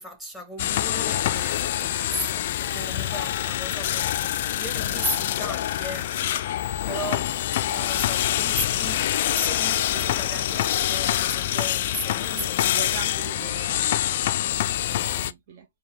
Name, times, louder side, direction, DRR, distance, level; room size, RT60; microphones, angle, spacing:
voice 1, 0.0-4.3 4.6-6.1 6.8-7.3 7.7-12.7 14.9-15.3, right 1 dB, 5° right, 1.2 m, -36 dB
sound 1, 0.6-15.3, left 12 dB, 45° left, 0.3 m, -25 dB
voice 2, 2.6-3.1 12.3-13.8 14.5-15.7, right 5 dB, 40° right, 0.6 m, -40 dB
4.5 x 2.3 x 3.5 m
hypercardioid pair, 135°, 0 cm